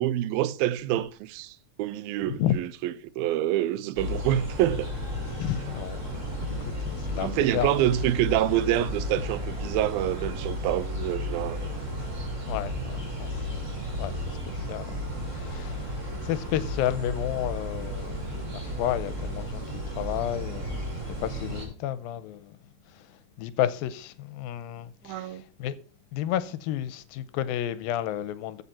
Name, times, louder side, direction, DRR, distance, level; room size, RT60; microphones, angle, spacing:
voice 1, 0.0-4.9 7.2-11.7 25.1-25.4, right 13 dB, 85° right, 2.5 m, -27 dB
voice 2, 2.3-2.6 5.3-6.0 6.9-7.7 12.5-13.3 13.9-14.9 15.3-16.0 16.2-20.8 21.1-22.6 23.4-25.7 26.1-28.6, left 12 dB, 85° left, 2.4 m, -31 dB
sound 1, 4.0-21.7, left 1 dB, 20° right, 3.6 m, -33 dB
14.5 x 5.7 x 4.2 m
omnidirectional pair, 4.1 m